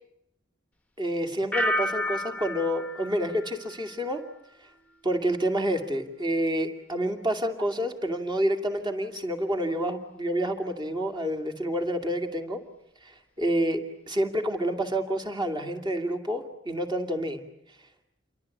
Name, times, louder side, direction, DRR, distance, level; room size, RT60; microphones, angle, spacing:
voice 1, 1.0-4.2 5.0-12.6 13.0-17.4, equal, 25° right, 5 dB, 2.6 m, -28 dB
sound 1, 1.5-4.4 4.7-5.2, left 1 dB, 10° left, 1.1 m, -32 dB
29.5 x 24.0 x 8.5 m, 0.77 s
head